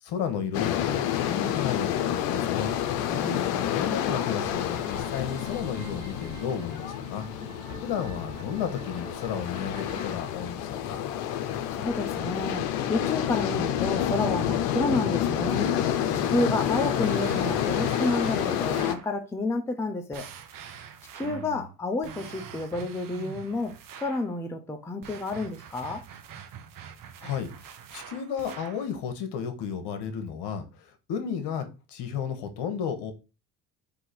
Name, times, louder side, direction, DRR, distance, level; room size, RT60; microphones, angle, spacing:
voice 1, 0.0-2.7 3.7-7.3 7.8-11.0 21.2-21.7 27.2-27.5 27.9-33.1, left 7 dB, 55° left, 1.1 m, -33 dB
sound 1, 0.5-18.9, left 10 dB, 75° left, 0.7 m, -29 dB
voice 2, 3.1-4.0 11.7-15.7 16.3-20.3 21.1-26.0, left 2 dB, 5° left, 0.6 m, -30 dB
sound 2, 4.5-10.2, right 3 dB, 80° right, 1.4 m, -46 dB
sound 3, 15.5-19.1 20.1-21.5 22.0-24.3 25.0-28.9, right 7 dB, 45° right, 0.8 m, -43 dB
3.7 x 2.9 x 4.3 m
hypercardioid pair, 65°, 47 cm